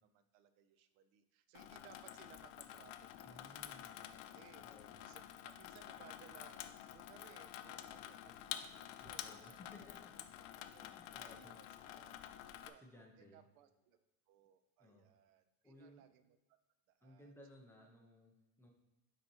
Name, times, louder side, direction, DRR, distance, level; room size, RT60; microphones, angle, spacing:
voice 1, 0.0-9.7 10.4-12.2 12.4-12.8 13.2-14.0 14.3-16.3 16.9-17.3 17.8-17.9, right 10 dB, 85° right, 11 dB, 0.7 m, -64 dB
Water tap faucet / Sink (filling or washing), 1.5-12.7, left 12 dB, 80° left, 0.6 m, -50 dB
voice 2, 3.2-4.0 4.6-5.0 9.0-10.1 10.8-11.6 12.8-13.4 14.8-15.1 15.6-16.1 17.0-18.7, left 1 dB, 5° left, -1 dB, 0.5 m, -60 dB
9.8 x 4.1 x 2.9 m, 1.0 s
cardioid pair, 175°, 41 cm